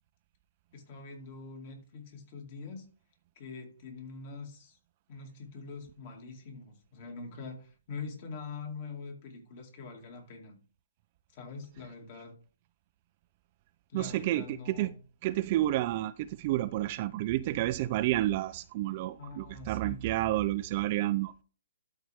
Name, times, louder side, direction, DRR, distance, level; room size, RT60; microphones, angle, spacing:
voice 1, 0.7-2.8 3.4-4.8 5.1-10.6 11.3-12.3 13.9-15.0 19.2-20.0, left 4 dB, 40° left, 2.3 m, -44 dB
voice 2, 13.9-14.9 15.2-21.4, right 15 dB, 35° right, 0.4 m, -30 dB
12.5 x 4.3 x 3.5 m
hypercardioid pair, 155°, 0 cm